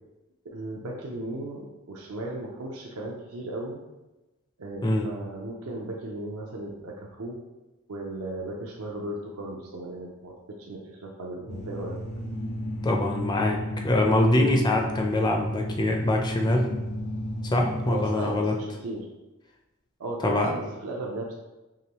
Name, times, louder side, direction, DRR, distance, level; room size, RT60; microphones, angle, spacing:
voice 1, 0.5-3.8 4.6-7.4 7.9-12.0 17.8-19.1 20.0-21.3, right 1 dB, 75° right, -2 dB, 0.5 m, -36 dB
sound 1, 11.5-18.1, left 1 dB, 70° left, 0.9 m, -33 dB
voice 2, 12.8-13.6 13.8-16.7 17.5-18.6 20.2-20.5, left 1 dB, 20° left, 2 dB, 0.4 m, -24 dB
4.8 x 2.9 x 2.9 m, 1.1 s
head